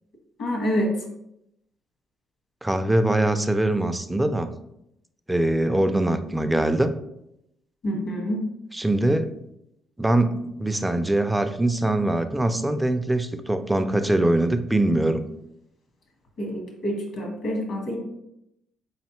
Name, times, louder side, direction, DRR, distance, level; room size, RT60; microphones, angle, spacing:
voice 1, 0.4-0.9 7.8-8.4 16.4-18.0, equal, 70° left, 1 dB, 1.1 m, -27 dB
voice 2, 2.6-4.5 5.3-6.9 8.7-9.3 10.0-15.2, right 1 dB, 10° right, 9 dB, 0.3 m, -22 dB
4.0 x 3.2 x 2.9 m, 0.81 s
cardioid pair, 90°, 0 cm